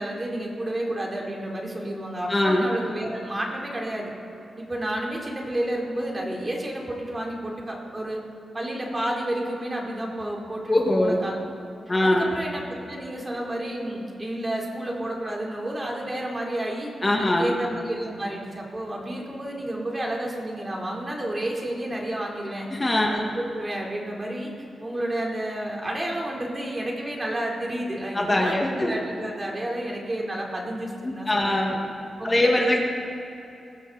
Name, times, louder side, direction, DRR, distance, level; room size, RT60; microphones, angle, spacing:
voice 1, 0.0-4.1 4.6-8.2 8.5-11.4 12.0-16.9 17.2-22.7 23.1-24.5 24.8-31.6 32.2-32.7, right 1 dB, 25° right, -2 dB, 4.3 m, -30 dB
voice 2, 2.3-2.7 10.7-11.2 11.9-12.3 17.0-17.5 22.7-23.2 28.1-28.9 31.0-31.8 32.2-32.8, left 1 dB, 25° left, -1 dB, 2.4 m, -22 dB
21.5 x 15.0 x 4.4 m, 2.9 s
cardioid pair, 60°, 0 cm